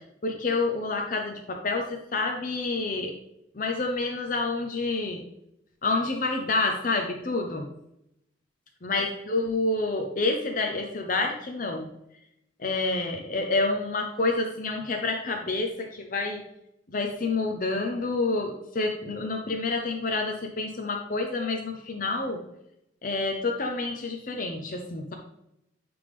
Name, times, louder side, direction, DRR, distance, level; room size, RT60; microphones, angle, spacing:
voice 1, 0.2-3.1 3.5-5.2 5.8-7.6 8.8-11.9 12.6-16.4 16.9-22.4 23.0-25.1, left 3 dB, 45° left, 3 dB, 0.7 m, -28 dB
9.8 x 3.5 x 3.5 m, 0.80 s
head